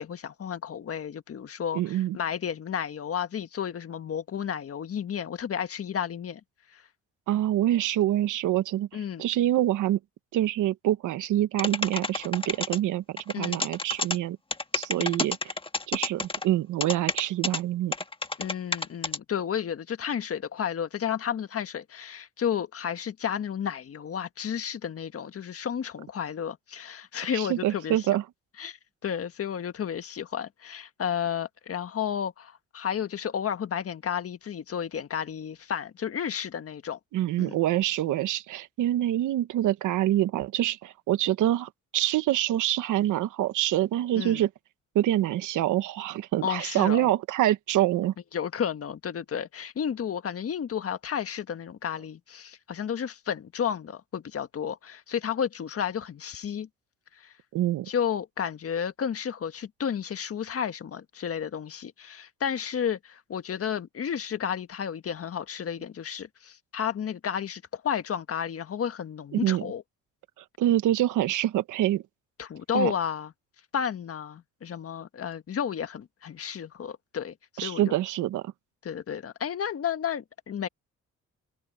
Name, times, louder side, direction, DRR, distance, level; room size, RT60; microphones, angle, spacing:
voice 1, 0.0-6.4 6.7-6.8 8.9-9.2 13.3-13.6 15.0-15.2 18.4-28.1 28.6-28.8 29.0-37.0 37.4-37.6 44.1-44.4 46.4-47.1 48.3-56.7 57.2-57.3 57.9-69.8 72.4-73.3 73.7-77.9 78.8-80.7, left 8 dB, 50° left, 1.5 m, -32 dB
voice 2, 1.7-2.2 7.3-8.9 9.2-10.0 10.3-14.4 14.7-15.5 15.9-17.9 27.3-28.2 37.1-44.5 44.9-48.1 57.5-57.9 69.3-69.7 70.6-72.0 72.7-72.9 77.6-78.4, right 13 dB, 85° right, 1.3 m, -26 dB
sound 1, 11.6-12.8 13.2-14.2 14.5-16.4 16.8-17.6 17.9-19.2, left 3 dB, 20° left, 1.5 m, -29 dB
open air
cardioid pair, 90°, 30 cm